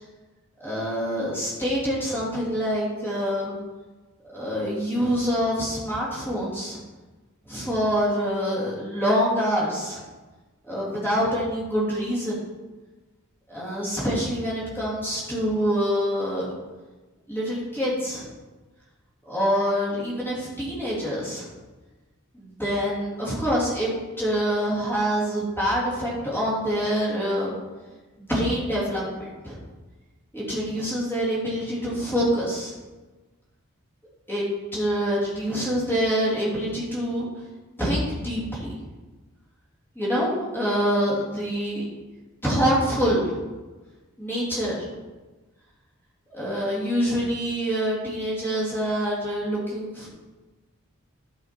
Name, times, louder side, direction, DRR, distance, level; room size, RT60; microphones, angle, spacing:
voice 1, 0.6-3.6 4.3-6.8 7.4-10.0 10.6-12.4 13.5-16.5 17.3-18.3 19.3-21.5 22.3-23.9 24.2-27.5 28.2-29.6 30.3-32.7 34.3-37.3 37.8-38.8 39.9-41.9 42.4-43.4 44.2-44.9 46.3-50.1, equal, 10° left, -7 dB, 2.8 m, -26 dB
11.5 x 5.1 x 4.6 m, 1.2 s
head